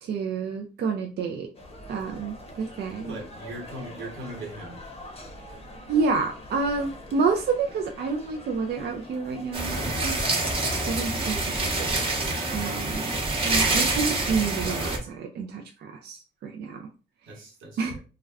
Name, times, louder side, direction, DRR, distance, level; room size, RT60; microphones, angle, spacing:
voice 1, 0.0-1.5 1.9-3.1 5.9-10.2 10.8-11.4 11.8-16.8 17.8-17.9, right 4 dB, 55° right, 0.4 m, -29 dB
sound 1, 1.5-11.0, left 1 dB, 30° left, 0.7 m, -43 dB
voice 2, 3.0-4.8 17.3-18.0, right 1 dB, 85° right, 1.1 m, -39 dB
sound 2, 9.5-15.0, right 2 dB, 25° right, 0.8 m, -26 dB
2.3 x 2.1 x 3.4 m
cardioid pair, 90°, 20 cm